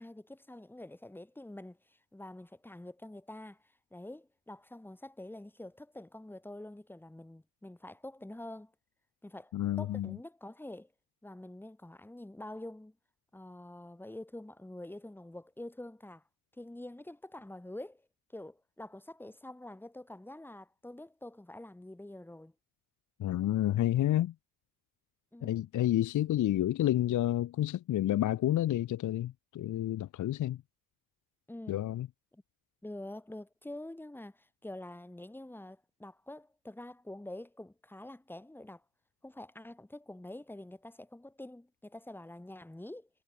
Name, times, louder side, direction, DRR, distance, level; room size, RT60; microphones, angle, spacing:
voice 1, 0.0-3.6 3.9-8.7 9.2-10.9 11.2-13.0 13.3-16.2 16.6-18.0 18.3-22.5 25.3-25.6 31.5-31.8 32.3-32.4 32.8-38.8 39.2-43.1, left 1 dB, 5° left, 0.9 m, -46 dB
voice 2, 9.5-10.2 23.2-24.3 25.4-30.6 31.7-32.1, left 13 dB, 45° left, 0.6 m, -29 dB
hypercardioid pair, 45°, 41 cm